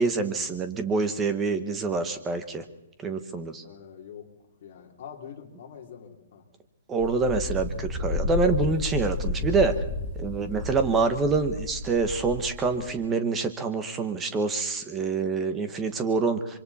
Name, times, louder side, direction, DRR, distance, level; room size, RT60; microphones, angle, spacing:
voice 1, 0.0-2.6 3.0-3.6 6.9-9.8 10.2-16.6, right 4 dB, 10° right, 9 dB, 1.0 m, -26 dB
voice 2, 3.6-4.3 4.6-6.4, left 8 dB, 40° left, 1 dB, 3.0 m, -44 dB
Wind, 7.0-12.9, left 2 dB, 15° left, 3.7 m, -31 dB
26.0 x 24.0 x 4.2 m, 0.88 s
hypercardioid pair, 180°, 0 cm